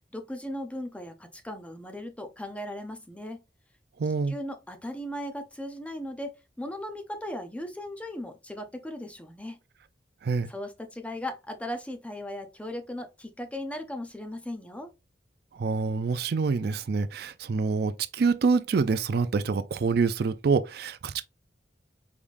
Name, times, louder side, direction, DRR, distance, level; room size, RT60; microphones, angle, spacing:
voice 1, 0.1-3.4 4.3-6.3 6.6-9.6 10.5-14.9, left 1 dB, 5° left, 0.6 m, -37 dB
voice 2, 4.0-4.3 10.2-10.5 15.6-21.2, right 4 dB, 60° right, 0.4 m, -26 dB
4.9 x 3.6 x 2.5 m
head